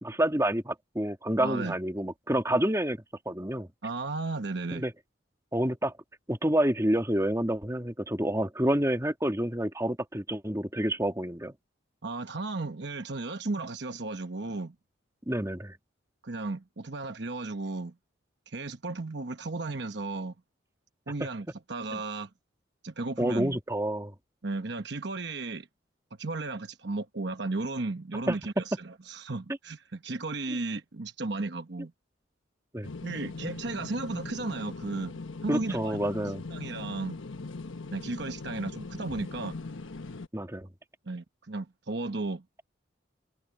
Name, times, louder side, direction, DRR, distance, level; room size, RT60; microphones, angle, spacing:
voice 1, 0.0-3.7 4.7-4.9 5.5-5.9 6.3-11.5 15.3-15.8 21.9-22.0 23.2-24.1 28.3-28.4 32.7-32.9 35.5-36.4 40.3-40.7, right 1 dB, 15° right, 2.1 m, -28 dB
voice 2, 1.4-1.7 3.8-4.8 12.0-14.7 16.2-17.9 18.5-20.3 21.1-22.3 22.8-23.6 24.4-25.7 26.2-31.9 33.0-37.2 37.9-39.6 41.1-42.4, right 3 dB, 60° right, 1.0 m, -34 dB
sound 1, 32.8-40.3, left 3 dB, 80° left, 1.2 m, -40 dB
head